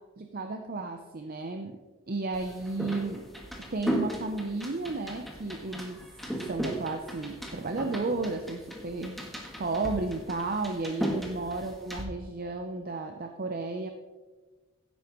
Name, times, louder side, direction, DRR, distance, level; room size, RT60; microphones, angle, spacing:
voice 1, 0.2-1.8 2.1-3.3 3.7-6.0 6.3-9.2 9.6-13.9, right 3 dB, 45° right, 5 dB, 0.7 m, -33 dB
sound 1, 2.3-12.0, equal, ahead, 1.5 m, -36 dB
16.0 x 8.6 x 3.1 m, 1.3 s
head